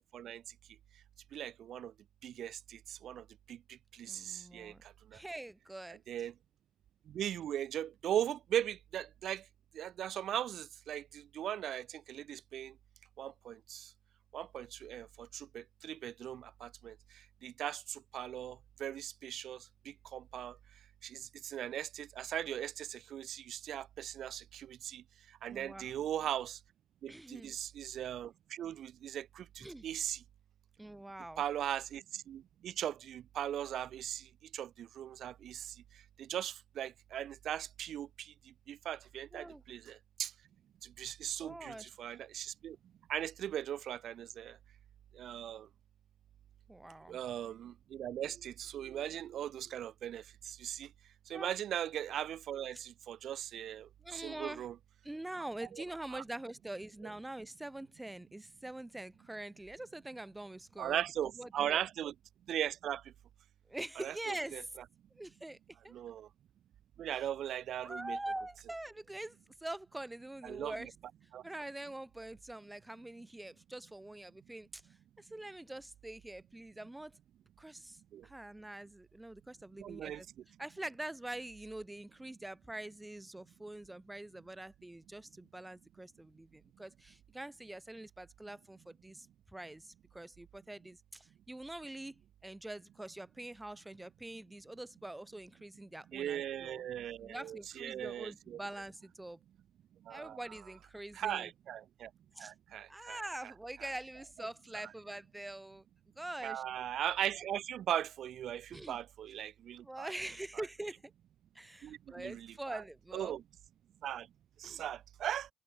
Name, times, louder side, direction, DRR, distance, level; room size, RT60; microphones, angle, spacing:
voice 1, 1.3-1.9 2.2-3.2 3.5-3.6 4.0-4.7 6.1-6.3 7.1-9.4 9.7-12.7 13.2-13.9 14.3-16.9 17.4-19.6 19.9-20.5 21.0-25.0 25.4-26.6 27.0-30.2 31.4-34.2 34.5-35.7 36.2-38.3 38.7-40.3 41.0-42.8 43.1-44.6 45.2-45.7 47.1-50.9 51.3-54.7 55.7-55.8 56.1-56.2 60.8-62.1 62.5-63.0 64.0-64.6 65.9-66.3 67.0-68.2 70.4-70.7 71.3-71.4 78.1-78.2 79.8-80.2 96.1-98.6 100.1-100.4 101.1-102.1 102.4-103.2 106.4-110.1 111.8-112.8 113.1-113.4 114.0-114.3 114.6-115.5, right 10 dB, 65° right, 0.5 m, -39 dB
voice 2, 4.1-4.8 5.1-6.0 25.5-25.9 27.1-27.5 29.6-29.9 30.8-31.4 39.3-39.6 41.4-41.9 46.7-47.2 51.3-51.6 54.0-54.7 55.0-61.0 61.4-61.8 63.7-64.7 65.2-65.6 65.8-65.9 67.1-67.3 67.8-70.9 71.4-74.8 75.2-77.2 77.6-80.3 80.6-96.8 97.2-99.4 100.1-101.5 102.4-102.5 102.9-105.8 106.2-106.6 108.7-109.0 109.8-111.0 111.5-113.4 114.6-114.8, right 1 dB, 10° right, 0.8 m, -45 dB
open air
supercardioid pair, 75°, 0 cm